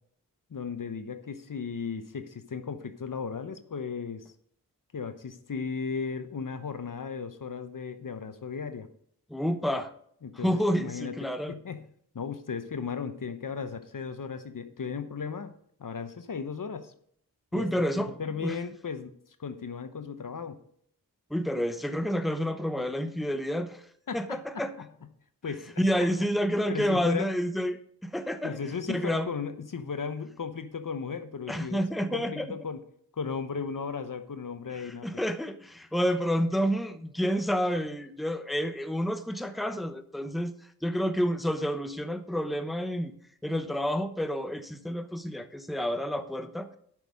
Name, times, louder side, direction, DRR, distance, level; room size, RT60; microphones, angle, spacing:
voice 1, 0.5-4.3 4.9-8.9 10.2-11.1 11.5-11.9 12.1-16.9 17.5-17.7 18.0-19.1 19.4-20.6 24.1-24.4 24.8-24.9 25.4-26.1 26.7-27.3 28.4-32.8 33.1-35.1, left 5 dB, 55° left, 9 dB, 0.9 m, -36 dB
voice 2, 9.3-9.9 10.3-11.6 17.5-18.6 21.3-23.9 24.1-24.7 25.8-28.6 28.9-29.3 31.5-32.5 34.7-43.1 43.4-46.7, equal, ahead, 8 dB, 0.9 m, -29 dB
8.9 x 6.3 x 5.1 m, 0.65 s
cardioid pair, 45°, 38 cm